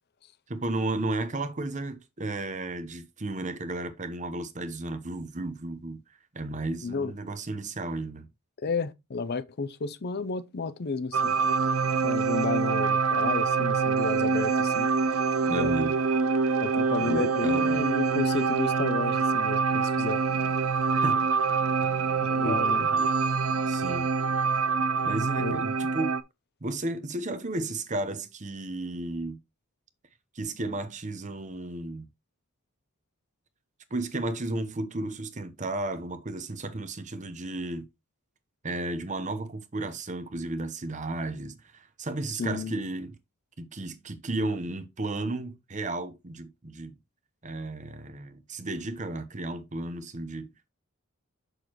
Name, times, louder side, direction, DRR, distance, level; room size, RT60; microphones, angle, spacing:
voice 1, 0.5-6.0 6.3-8.3 15.5-15.9 17.0-17.8 20.9-21.2 22.4-23.1 23.7-24.1 25.0-26.1 26.6-29.4 30.3-32.1 33.9-37.9 38.6-43.2 43.6-46.9 47.4-50.5, right 2 dB, 35° right, 0.9 m, -33 dB
voice 2, 6.8-7.1 8.6-11.3 12.0-14.9 15.5-15.7 16.6-20.2 22.2-22.9 25.4-25.6 42.4-42.7, left 4 dB, 50° left, 0.6 m, -32 dB
sound 1, 11.1-26.2, right 5 dB, 80° right, 0.6 m, -25 dB
6.8 x 6.3 x 3.0 m
head